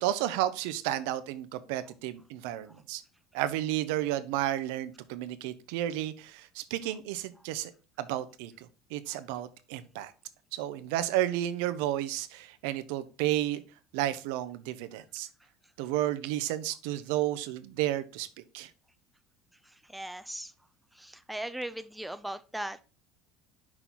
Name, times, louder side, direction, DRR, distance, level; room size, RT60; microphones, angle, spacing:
voice 1, 0.0-3.0 3.3-7.7 8.0-10.1 10.5-13.6 13.9-15.3 15.8-18.7, right 13 dB, 80° right, 12 dB, 0.6 m, -32 dB
voice 2, 19.9-20.5 21.0-22.8, right 1 dB, 5° right, 11 dB, 0.4 m, -38 dB
6.1 x 4.4 x 3.8 m, 0.34 s
supercardioid pair, 120°, 0 cm